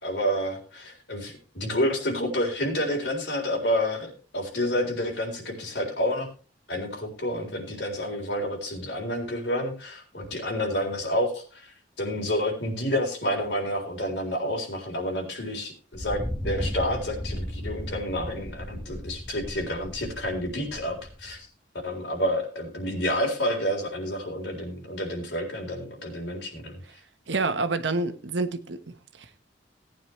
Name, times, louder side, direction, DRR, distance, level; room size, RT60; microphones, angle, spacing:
voice 1, 0.0-6.3 6.7-11.7 12.0-21.5 21.8-26.8, equal, 70° left, 3.8 m, -29 dB
Thunder, 15.9-21.4, equal, 5° left, 1.4 m, -35 dB
voice 2, 27.3-29.4, right 3 dB, 75° right, 1.2 m, -28 dB
18.0 x 9.5 x 3.2 m
head